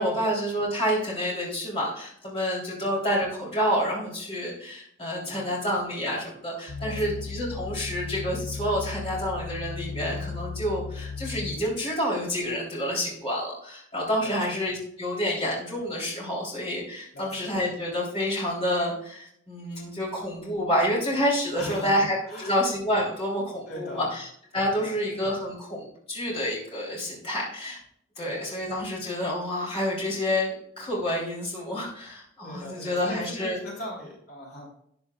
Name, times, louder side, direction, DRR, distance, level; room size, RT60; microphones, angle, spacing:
voice 1, 0.0-24.3 24.5-27.8 28.2-33.6, equal, 30° left, -5 dB, 3.4 m, -28 dB
voice 2, 5.2-5.7 6.8-7.2 14.2-14.5 17.1-17.5 21.5-22.6 23.7-24.1 24.7-25.2 28.2-28.5 32.4-34.7, left 1 dB, 50° left, -4 dB, 3.2 m, -40 dB
sound 1, 6.7-11.8 12.4-12.5, left 5 dB, 70° left, 0.6 m, -36 dB
12.5 x 9.6 x 2.4 m, 0.69 s
head